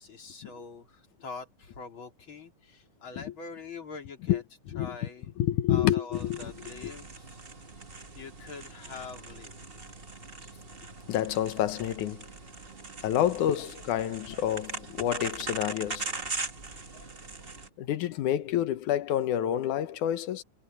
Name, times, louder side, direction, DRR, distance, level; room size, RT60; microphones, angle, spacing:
voice 1, 0.0-4.4 4.8-5.3 5.7-7.4 8.2-9.6 13.6-13.7 16.9-17.2, left 4 dB, 40° left, 3.7 m, -44 dB
voice 2, 4.3-5.1 5.4-6.9 11.1-12.3 13.0-16.1 17.8-20.4, left 11 dB, 80° left, 2.5 m, -29 dB
sound 1, 6.1-17.7, right 3 dB, 30° right, 1.0 m, -41 dB
omnidirectional pair, 3.6 m